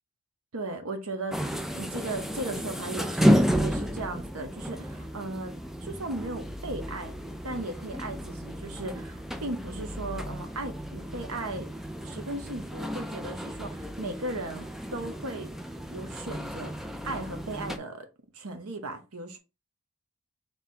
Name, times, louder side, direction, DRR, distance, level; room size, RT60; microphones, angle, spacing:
voice 1, 0.5-5.5 5.8-7.1 7.4-11.7 12.0-15.5 15.9-18.1 18.3-19.4, right 2 dB, 85° right, 1.0 m, -37 dB
sound 1, 1.3-17.8, equal, ahead, 0.3 m, -32 dB
3.5 x 3.4 x 4.2 m
head